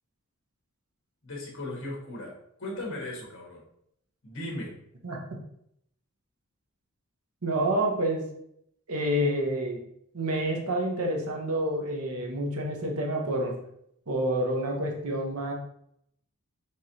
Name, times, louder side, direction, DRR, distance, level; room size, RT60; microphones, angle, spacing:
voice 1, 1.2-2.3 2.6-3.6 4.2-4.7, left 1 dB, 60° left, -2 dB, 1.6 m, -37 dB
voice 2, 7.4-8.2 8.9-9.8 10.1-13.5 14.1-15.5, right 1 dB, 85° right, 0 dB, 1.1 m, -28 dB
4.7 x 3.7 x 2.9 m, 0.73 s
head